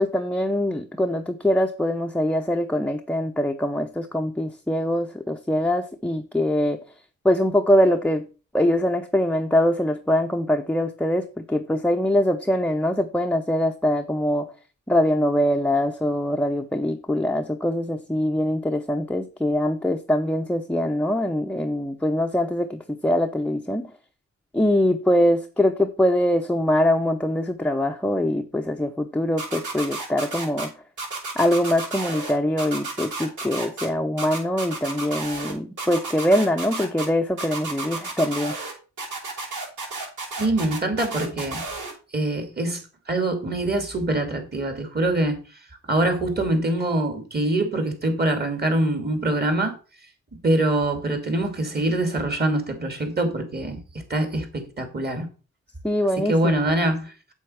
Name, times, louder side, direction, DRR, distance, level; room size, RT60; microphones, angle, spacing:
voice 1, 0.0-6.8 7.2-8.3 8.5-14.5 14.9-23.9 24.5-30.7 31.4-38.5 55.8-56.5, left 1 dB, 5° left, 0.8 m, -23 dB
sound 1, 29.4-30.7 31.0-32.3 32.6-33.9 34.2-35.5 35.8-37.1 37.4-38.7 39.0-41.9, right 3 dB, 80° right, 6.2 m, -32 dB
voice 2, 40.4-41.6 42.1-45.4 45.9-49.7 50.4-53.8 54.1-54.5 54.8-55.3 56.3-57.1, right 1 dB, 30° right, 3.0 m, -24 dB
8.3 x 7.9 x 5.8 m
cardioid pair, 110°, 30 cm